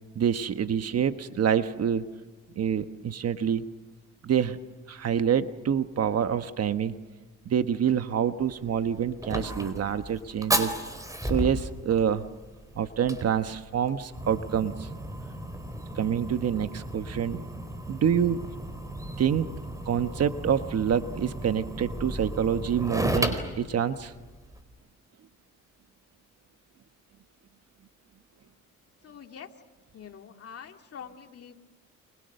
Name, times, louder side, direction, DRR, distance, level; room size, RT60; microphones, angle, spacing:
voice 1, 0.1-2.1 2.6-3.7 4.2-4.6 4.9-7.0 7.4-10.7 11.2-12.2 12.7-14.9 15.9-17.4 17.9-18.5 19.2-19.5 19.8-24.1, right 8 dB, 55° right, 9 dB, 1.3 m, -27 dB
Fire, 8.4-24.6, right 1 dB, 10° right, 4.3 m, -34 dB
voice 2, 29.0-29.5 29.9-31.5, left 7 dB, 50° left, 4 dB, 2.4 m, -45 dB
30.0 x 28.0 x 6.7 m, 1.3 s
cardioid pair, 90°, 30 cm